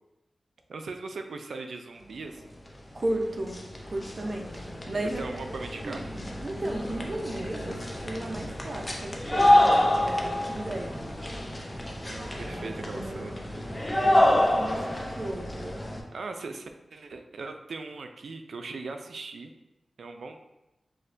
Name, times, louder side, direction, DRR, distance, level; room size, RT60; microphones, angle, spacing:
voice 1, 0.7-2.5 5.2-6.1 8.4-8.5 11.9-13.4 16.1-19.5 20.0-20.4, right 3 dB, 90° right, 6 dB, 0.3 m, -39 dB
voice 2, 2.9-3.6 3.9-5.2 5.8-11.1 12.5-13.5 13.9-15.8, right 1 dB, 50° right, 2 dB, 0.6 m, -35 dB
sound 1, 3.0-3.1 3.3-16.0, left 1 dB, 25° left, 0.6 m, -27 dB
6.1 x 2.1 x 2.6 m, 0.98 s
wide cardioid pair, 65°, 0 cm